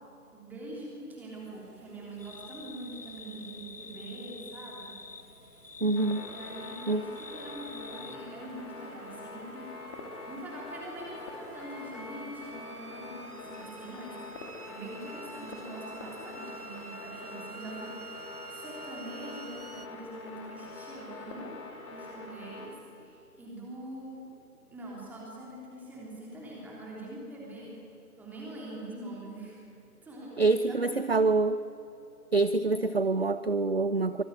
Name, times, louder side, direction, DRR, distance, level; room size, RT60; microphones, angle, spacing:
voice 1, 0.3-5.0 6.2-9.7 10.2-21.5 21.9-24.2 24.7-27.8 28.2-29.6 30.0-31.3, right 1 dB, 5° right, -4 dB, 3.2 m, -44 dB
sound 1, 1.3-19.9, right 4 dB, 70° right, 1.6 m, -51 dB
sound 2, 2.2-8.2, left 4 dB, 85° left, 1.6 m, -47 dB
voice 2, 5.8-6.3 6.9-7.0 30.4-31.6 32.3-34.2, right 3 dB, 40° right, 13 dB, 0.5 m, -26 dB
sound 3, 6.0-22.7, left 3 dB, 20° left, 2.1 m, -45 dB
24.5 x 20.5 x 9.1 m, 2.8 s
figure-of-eight pair, 150°, 47 cm